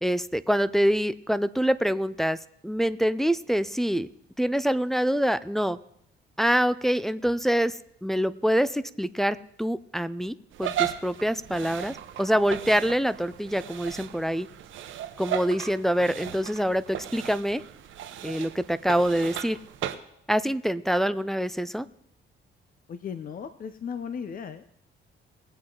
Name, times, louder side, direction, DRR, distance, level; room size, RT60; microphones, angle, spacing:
voice 1, 0.0-2.4 2.6-4.1 4.4-5.8 6.4-7.8 8.0-14.5 15.2-17.6 18.2-19.6 20.3-21.9, equal, ahead, 12 dB, 0.4 m, -25 dB
sound 1, 10.5-20.0, right 11 dB, 75° right, 0.9 m, -36 dB
voice 2, 22.9-24.6, left 7 dB, 45° left, 11 dB, 0.7 m, -36 dB
20.0 x 7.8 x 3.8 m, 0.73 s
cardioid pair, 90°, 20 cm